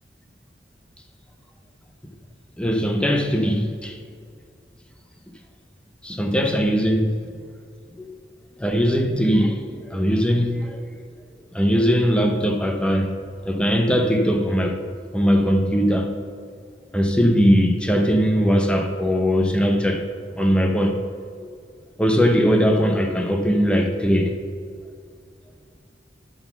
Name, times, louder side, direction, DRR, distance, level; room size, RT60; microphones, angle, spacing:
voice 1, 2.6-4.0 6.0-7.2 8.0-8.1 8.6-10.9 11.5-13.1 13.5-14.8 15.1-16.1 16.9-20.1 20.3-21.0 21.4-21.5 22.0-24.4, equal, 5° left, 0.7 m, -20 dB
10.5 x 4.0 x 6.9 m
head